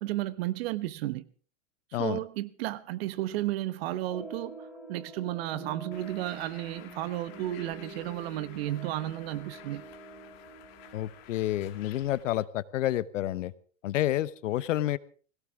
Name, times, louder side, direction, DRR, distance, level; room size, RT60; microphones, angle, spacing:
voice 1, 0.0-1.3 1.9-9.8, right 15 dB, 50° right, 15 dB, 1.1 m, -33 dB
sound 1, 4.0-11.2, right 2 dB, ahead, 6.2 m, -46 dB
Bird, 5.9-12.2, left 12 dB, 50° left, 2.3 m, -52 dB
voice 2, 10.9-13.5 13.8-15.0, left 13 dB, 70° left, 18 dB, 1.0 m, -29 dB
20.0 x 17.5 x 3.6 m, 0.40 s
supercardioid pair, 145°, 39 cm